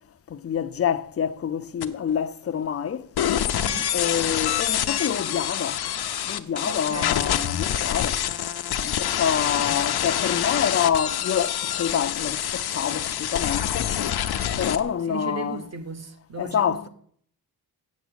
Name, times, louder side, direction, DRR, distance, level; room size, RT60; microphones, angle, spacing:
voice 1, 0.3-3.1 3.9-5.8 6.3-8.2 8.8-13.9 14.6-15.6 16.4-16.9, left 8 dB, 40° left, 0.5 m, -27 dB
sound 1, 1.8-1.9 3.2-14.8, left 10 dB, 75° left, 0.7 m, -26 dB
voice 2, 6.5-7.2 9.5-10.0 15.1-16.9, right 4 dB, 40° right, 1.1 m, -36 dB
8.3 x 6.9 x 8.0 m
wide cardioid pair, 135°, 38 cm